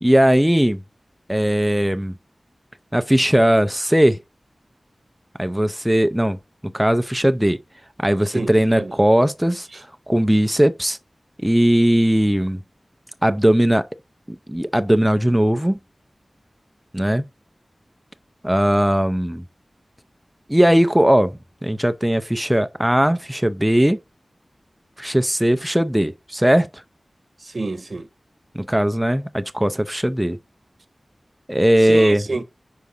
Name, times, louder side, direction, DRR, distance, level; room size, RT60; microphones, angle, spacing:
voice 1, 0.0-0.8 1.3-2.1 2.9-4.2 5.4-6.4 6.6-7.6 8.0-9.7 10.1-11.0 11.4-12.6 13.2-13.8 14.3-15.8 16.9-17.2 18.4-19.4 20.5-24.0 25.0-26.8 28.5-30.4 31.5-32.2, equal, 5° right, 0.5 m, -18 dB
voice 2, 8.3-9.0 9.7-9.8 27.4-28.1 31.8-32.4, right 2 dB, 55° right, 0.7 m, -28 dB
4.9 x 4.7 x 5.5 m
wide cardioid pair, 60°, 0 cm